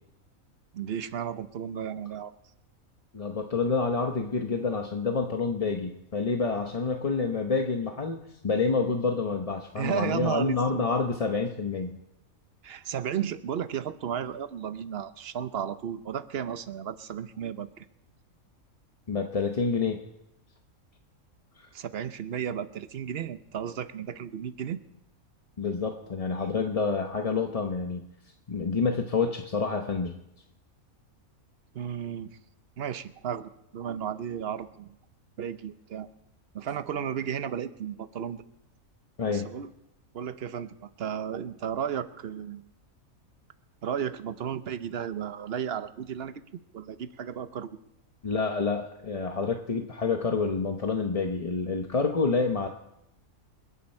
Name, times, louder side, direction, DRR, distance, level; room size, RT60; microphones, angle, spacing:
voice 1, 0.7-2.3 9.8-10.9 12.6-17.9 21.7-24.8 31.7-32.3 32.8-35.0 35.4-36.1 36.5-38.4 39.3-39.7 40.1-42.6 43.8-46.4 46.7-47.8, right 8 dB, 50° right, 12 dB, 0.9 m, -34 dB
voice 2, 3.1-8.2 8.4-12.0 19.1-20.0 21.6-21.7 25.6-28.0 28.5-30.2 39.2-39.5 48.2-52.7, left 4 dB, 30° left, 4 dB, 0.8 m, -28 dB
28.5 x 9.7 x 4.4 m, 0.87 s
omnidirectional pair, 1.5 m